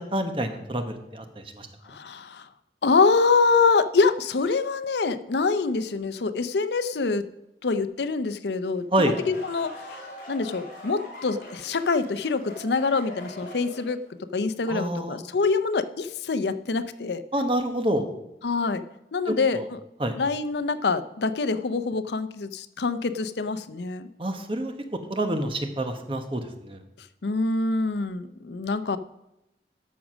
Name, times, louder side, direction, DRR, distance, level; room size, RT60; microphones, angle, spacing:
voice 1, 0.1-1.7 8.9-9.1 14.7-15.2 17.3-18.1 19.5-19.6 20.0-20.2 24.2-24.7 25.1-26.8, right 1 dB, 30° right, 6 dB, 1.0 m, -27 dB
voice 2, 1.9-2.5 2.8-7.2 7.6-9.7 10.3-14.0 14.3-17.2 18.4-18.8 19.1-19.8 20.1-24.1 27.2-29.0, left 4 dB, 75° left, 12 dB, 0.6 m, -25 dB
sound 1, 8.7-14.1, equal, 50° left, 4.2 m, -42 dB
12.0 x 6.3 x 6.2 m, 0.89 s
head